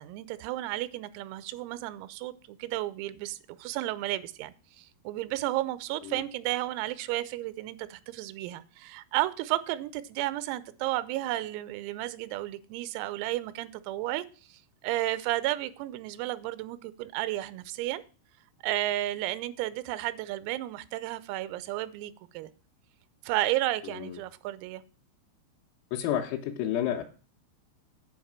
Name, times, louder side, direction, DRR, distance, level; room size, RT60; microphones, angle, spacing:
voice 1, 0.0-18.0 18.6-22.5 23.2-24.8, right 15 dB, 90° right, 3.4 m, -33 dB
voice 2, 23.8-24.2 25.9-27.0, left 10 dB, 85° left, 3.6 m, -30 dB
10.0 x 4.9 x 7.3 m
omnidirectional pair, 5.9 m